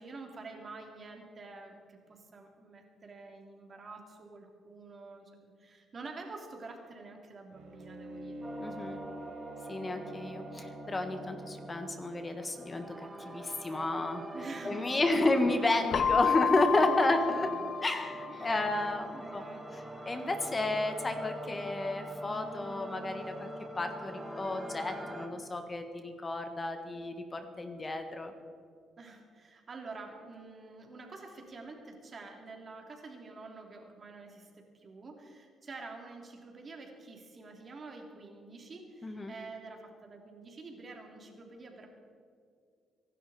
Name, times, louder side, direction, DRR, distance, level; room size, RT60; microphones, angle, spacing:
voice 1, 0.0-8.4 8.7-8.9 14.3-15.3 16.8-17.0 17.3-17.6 18.3-18.7 19.1-19.6 29.0-41.9, right 3 dB, 40° right, 2 dB, 3.1 m, -48 dB
Bowed string instrument, 7.5-12.2, right 1 dB, 85° right, 4.0 m, -46 dB
sound 1, 8.4-25.3, right 1 dB, 15° right, 2.2 m, -44 dB
voice 2, 8.6-9.0 9.7-14.2 14.6-17.5 17.8-19.4 20.0-23.5 23.8-28.3 39.0-39.3, left 2 dB, 25° left, 6 dB, 1.5 m, -31 dB
Keyboard (musical), 15.9-18.6, left 7 dB, 55° left, 0.3 m, -31 dB
25.0 x 12.0 x 4.3 m, 2.3 s
cardioid pair, 90°, 0 cm